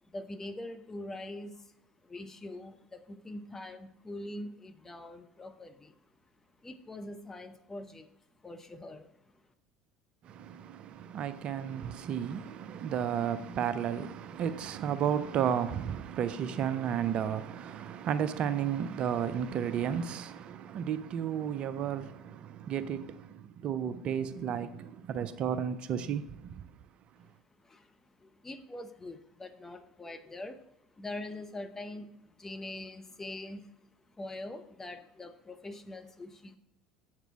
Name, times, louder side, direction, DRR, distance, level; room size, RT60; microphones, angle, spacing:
voice 1, 0.0-1.7 2.0-5.9 6.6-8.1 8.4-9.3 27.6-30.6 31.0-33.7 34.2-36.6, left 1 dB, 15° left, 0.7 m, -43 dB
voice 2, 10.2-26.6, right 8 dB, 45° right, 0.4 m, -33 dB
8.0 x 5.9 x 4.3 m
figure-of-eight pair, 65°, 3 cm